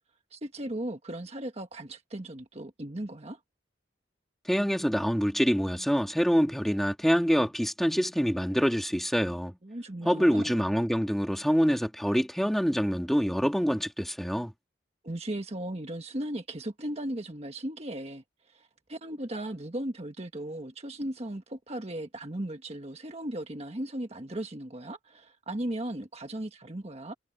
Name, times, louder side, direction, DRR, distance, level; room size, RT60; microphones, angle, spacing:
voice 1, 0.3-3.4 9.6-10.5 15.0-27.1, right 1 dB, 35° right, 1.4 m, -37 dB
voice 2, 4.5-9.6 10.1-14.5, equal, ahead, 2.3 m, -26 dB
head